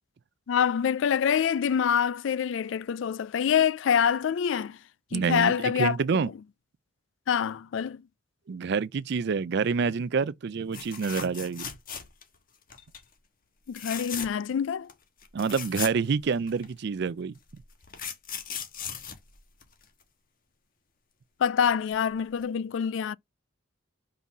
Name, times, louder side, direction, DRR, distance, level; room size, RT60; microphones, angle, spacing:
voice 1, 0.5-4.8 5.1-6.0 7.3-8.0 13.7-14.9 21.4-23.2, left 8 dB, 65° left, 0.3 m, -26 dB
voice 2, 5.1-6.3 8.5-11.7 15.3-17.3, right 5 dB, 55° right, 0.4 m, -27 dB
sound 1, 10.7-12.4 12.7-13.0 13.7-14.5 14.9-15.0 15.2-16.7 17.5-20.0 21.9-22.1 22.4-22.5, left 8 dB, 45° left, 1.4 m, -38 dB
5.4 x 3.9 x 6.0 m
head